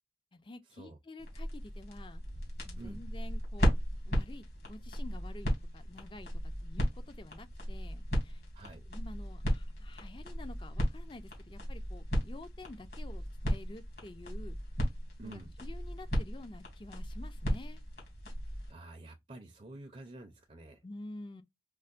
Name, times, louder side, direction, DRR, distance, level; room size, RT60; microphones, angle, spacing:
voice 1, 0.3-2.2 2.6-3.8 4.1-8.4 8.9-14.6 15.2-17.8 20.8-21.4, left 2 dB, 30° left, 0.4 m, -49 dB
sound 1, 1.2-18.7, equal, 60° left, 1.8 m, -35 dB
voice 2, 15.2-15.5 18.7-20.8, right 2 dB, 35° right, 0.5 m, -49 dB
5.2 x 2.1 x 2.4 m
head